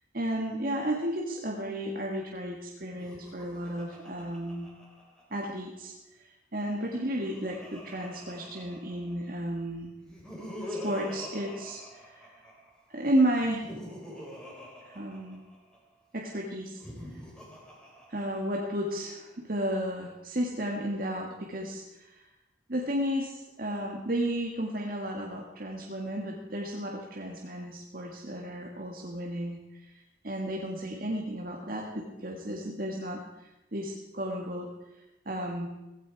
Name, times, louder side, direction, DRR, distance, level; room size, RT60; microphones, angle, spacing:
voice 1, 0.1-4.7 5.3-6.3 6.5-9.9 10.7-12.3 12.9-13.7 14.8-15.4 16.1-16.8 18.1-22.2 22.7-34.7 35.3-35.7, right 1 dB, 45° right, -1 dB, 1.8 m, -33 dB
Laughter, 2.9-5.6 6.7-9.3 10.0-12.7 13.3-15.8 16.6-18.8, left 1 dB, 5° left, 3.6 m, -45 dB
16.5 x 16.0 x 4.7 m, 0.96 s
head